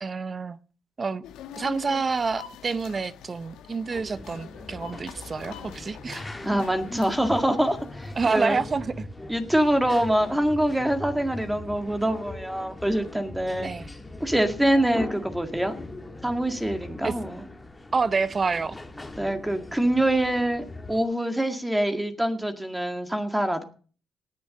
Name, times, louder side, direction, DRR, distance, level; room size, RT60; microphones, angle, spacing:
voice 1, 0.0-0.6 1.0-1.2 1.5-6.3 8.2-9.1 13.6-13.9 17.0-17.1 17.9-18.8, right 4 dB, 35° right, 16 dB, 0.7 m, -28 dB
sound 1, 1.2-8.5, left 10 dB, 90° left, 1.2 m, -45 dB
sound 2, 3.9-21.0, left 2 dB, 15° left, 1.6 m, -40 dB
voice 2, 6.4-8.6 9.3-13.7 14.2-15.8 16.2-17.4 19.2-23.6, right 1 dB, 5° right, 6 dB, 2.0 m, -25 dB
18.5 x 7.2 x 6.6 m, 0.41 s
cardioid pair, 90°, 0 cm